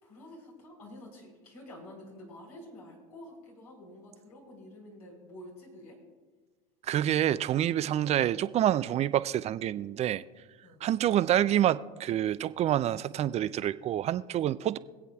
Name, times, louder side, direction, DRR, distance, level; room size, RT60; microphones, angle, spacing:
voice 1, 0.0-6.0 10.6-10.8, left 1 dB, 90° left, 3.8 m, -49 dB
voice 2, 6.8-10.2 10.8-14.8, right 11 dB, 35° right, 0.4 m, -27 dB
25.0 x 8.3 x 2.4 m
hypercardioid pair, 90°, 19 cm